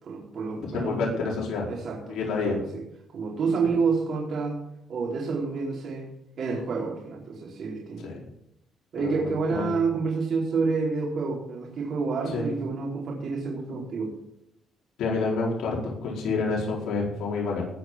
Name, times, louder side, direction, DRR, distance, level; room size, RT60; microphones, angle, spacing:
voice 1, 0.0-1.3 1.7-2.2 2.4-2.8 3.1-4.6 4.9-6.1 6.4-8.0 8.9-14.1, right 4 dB, 60° right, -4 dB, 4.5 m, -29 dB
voice 2, 0.6-1.7 2.1-2.6 8.0-8.1 9.0-9.7 12.3-12.5 15.0-17.7, left 4 dB, 75° left, -3 dB, 4.6 m, -28 dB
19.0 x 6.4 x 7.6 m, 0.78 s
cardioid pair, 90°, 0 cm